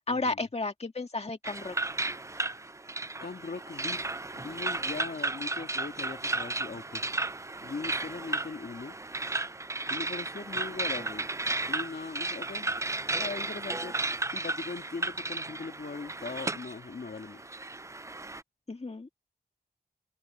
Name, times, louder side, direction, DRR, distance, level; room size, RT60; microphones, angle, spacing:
voice 1, 0.1-1.8 18.7-19.1, left 3 dB, 40° left, 1.9 m, -33 dB
sound 1, 1.4-18.4, right 2 dB, 15° right, 0.4 m, -34 dB
voice 2, 3.2-4.1 4.3-7.0 7.6-9.0 9.9-11.3 11.6-12.7 13.1-14.0 14.3-17.4, left 4 dB, 65° left, 2.0 m, -40 dB
wide cardioid pair, 70°, 17 cm